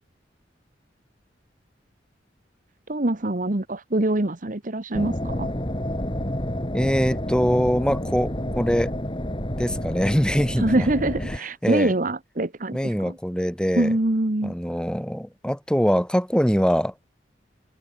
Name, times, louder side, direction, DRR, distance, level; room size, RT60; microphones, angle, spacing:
voice 1, 2.9-5.5 10.6-13.1 13.7-14.5, right 1 dB, 45° right, 1.4 m, -24 dB
sound 1, 4.9-11.4, equal, 30° left, 5.0 m, -29 dB
voice 2, 6.7-8.9 9.6-10.9 11.6-11.9 12.7-14.0 14.4-17.1, equal, 5° left, 5.3 m, -23 dB
head